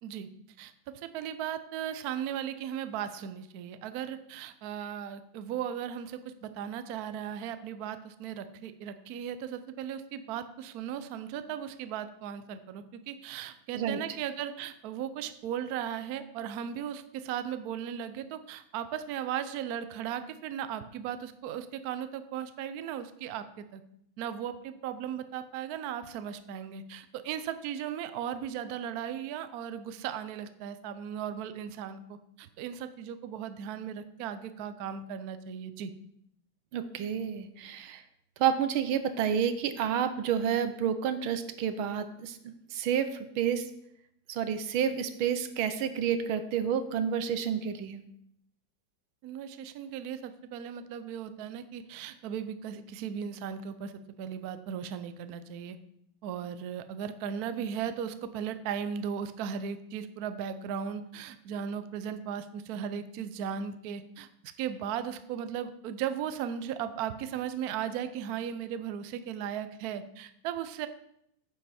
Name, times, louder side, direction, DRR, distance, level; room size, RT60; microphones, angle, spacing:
voice 1, 0.6-23.8 24.2-35.9 49.2-53.9 54.2-55.8 56.2-64.3 64.6-70.9, right 9 dB, 70° right, 11 dB, 0.9 m, -37 dB
voice 2, 36.7-38.0 38.4-43.1 43.4-43.6 44.3-48.0, right 8 dB, 85° right, 10 dB, 1.6 m, -29 dB
9.7 x 7.8 x 4.2 m, 0.76 s
omnidirectional pair, 2.2 m